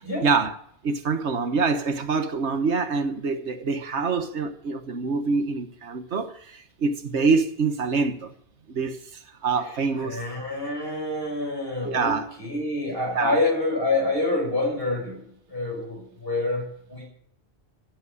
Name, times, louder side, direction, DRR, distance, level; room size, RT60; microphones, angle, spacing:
voice 1, 0.2-0.6 0.8-6.3 6.8-8.3 8.7-9.0 9.4-10.2 11.8-12.3 13.1-13.4, right 4 dB, 80° right, 1.5 m, -25 dB
voice 2, 10.0-15.2 15.5-17.1, left 2 dB, 55° left, 6.7 m, -27 dB
14.5 x 8.4 x 9.5 m
omnidirectional pair, 1.1 m